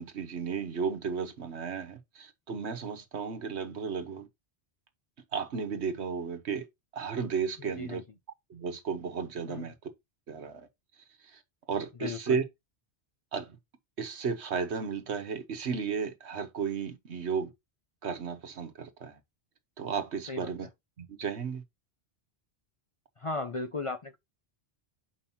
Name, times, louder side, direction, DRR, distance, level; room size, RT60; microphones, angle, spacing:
voice 1, 0.0-4.3 5.3-6.7 6.9-8.0 8.5-9.9 10.3-10.7 11.2-11.4 11.7-12.4 13.3-13.6 14.0-17.5 18.0-19.2 19.8-20.7 21.0-21.6, right 6 dB, 80° right, 1.4 m, -34 dB
voice 2, 7.7-8.0 9.5-9.7 12.0-12.4 20.3-20.7 23.2-24.2, left 3 dB, 45° left, 0.4 m, -36 dB
7.1 x 5.2 x 2.7 m
omnidirectional pair, 1.1 m